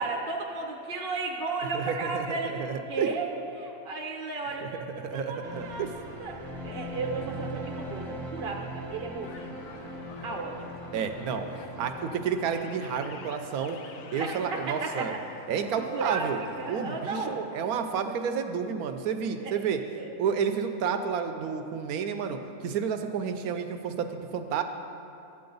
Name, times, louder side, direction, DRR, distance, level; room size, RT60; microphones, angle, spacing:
voice 1, 0.0-2.6 2.9-3.3 3.5-5.9 6.2-6.4 6.6-9.7 10.2-10.7 14.2-15.2 15.9-16.3 16.6-17.7 19.4-19.5 19.9-20.1, right 3 dB, 50° right, -1 dB, 0.8 m, -34 dB
voice 2, 1.7-3.1 4.6-4.7 5.0-5.9 10.9-11.5 11.8-13.8 14.1-15.1 15.5-16.4 16.7-19.8 20.2-24.6, right 7 dB, 80° right, 7 dB, 1.1 m, -30 dB
sound 1, 5.4-14.6 14.8-15.0, equal, 20° right, 0.9 m, -41 dB
sound 2, 9.2-17.4, left 5 dB, 70° left, 1.0 m, -46 dB
12.0 x 8.6 x 3.9 m, 2.7 s
omnidirectional pair, 1.6 m